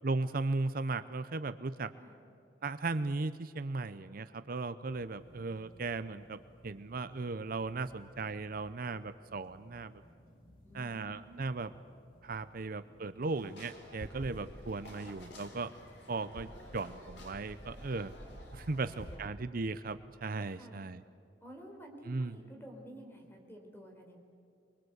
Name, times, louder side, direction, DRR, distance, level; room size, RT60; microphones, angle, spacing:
voice 1, 0.0-1.9 2.6-10.0 10.7-11.7 12.2-15.7 16.1-18.1 18.5-21.0 22.1-22.4, right 3 dB, 50° right, 12 dB, 0.7 m, -37 dB
sound 1, 4.9-16.3, equal, 50° left, 3.1 m, -61 dB
voice 2, 10.6-11.5 14.1-14.3 18.0-18.1 18.7-19.3 20.6-20.9 21.4-24.2, right 1 dB, 15° left, 2 dB, 4.1 m, -52 dB
sound 2, 13.3-19.2, equal, 70° left, 4.6 m, -49 dB
24.5 x 23.0 x 8.0 m, 2.6 s
head